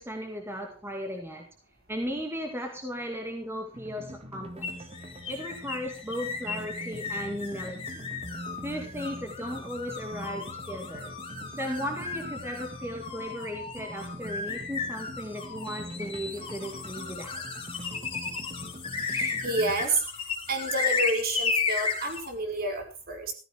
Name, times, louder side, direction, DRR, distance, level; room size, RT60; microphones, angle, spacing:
voice 1, 0.0-1.5 1.9-4.9 5.3-8.1 8.6-11.1 11.6-17.4, equal, 10° right, 3 dB, 2.2 m, -36 dB
sound 1, 3.7-19.9, equal, 30° right, 1.7 m, -43 dB
sound 2, 4.6-22.3, left 4 dB, 30° left, 3.6 m, -34 dB
voice 2, 19.1-20.0 20.5-23.3, right 2 dB, 50° right, 3 dB, 4.6 m, -29 dB
15.0 x 14.0 x 4.6 m, 0.34 s
head